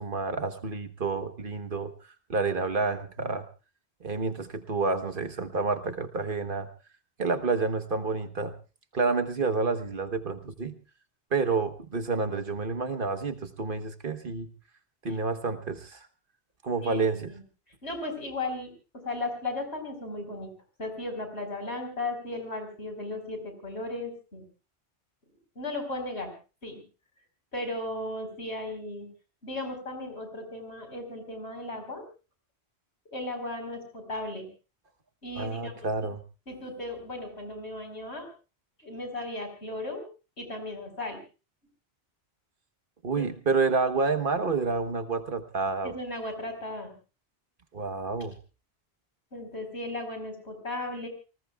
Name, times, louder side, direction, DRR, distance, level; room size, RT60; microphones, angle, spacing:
voice 1, 0.0-1.9 2.3-3.4 4.0-6.7 7.2-8.5 8.9-10.8 11.3-14.5 15.0-16.1 16.6-17.3 35.4-36.2 43.0-45.9 47.7-48.3, right 4 dB, 55° right, 9 dB, 1.4 m, -29 dB
voice 2, 16.8-17.4 17.8-18.7 19.0-20.5 20.8-24.4 25.5-26.3 26.6-26.8 27.5-29.1 29.4-32.0 33.1-34.5 35.2-36.1 36.5-38.3 38.8-40.0 40.4-41.2 43.1-43.2 45.8-46.9 49.3-51.1, left 2 dB, 80° left, 6 dB, 5.0 m, -36 dB
29.5 x 19.0 x 2.4 m, 0.33 s
omnidirectional pair, 1.1 m